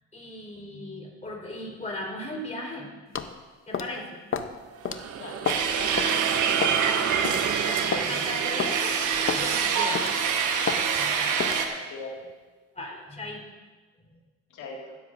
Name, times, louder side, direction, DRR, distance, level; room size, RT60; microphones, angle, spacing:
voice 1, 0.1-2.9 3.7-4.1 6.5-7.0 7.2-10.1 10.9-11.3 12.7-13.4, left 1 dB, 25° left, -2 dB, 4.0 m, -38 dB
sound 1, 3.1-3.3 3.7-4.0 4.3-4.5 4.8-5.0 5.4-5.7 6.0-6.1 6.6-6.8 7.2-7.4 7.9-8.1 8.6-8.7 9.3-9.5 9.9-10.2 10.7-10.8 11.4-11.6, left 6 dB, 45° left, 0.8 m, -29 dB
sound 2, 4.6-11.4, right 8 dB, 50° right, 0.7 m, -34 dB
voice 2, 5.2-5.9 11.4-12.3 14.5-15.0, left 3 dB, 85° left, -2 dB, 2.2 m, -41 dB
sound 3, 5.5-11.7, right 6 dB, 80° right, 1.3 m, -26 dB
15.5 x 13.0 x 2.6 m, 1.3 s
cardioid pair, 90°, 30 cm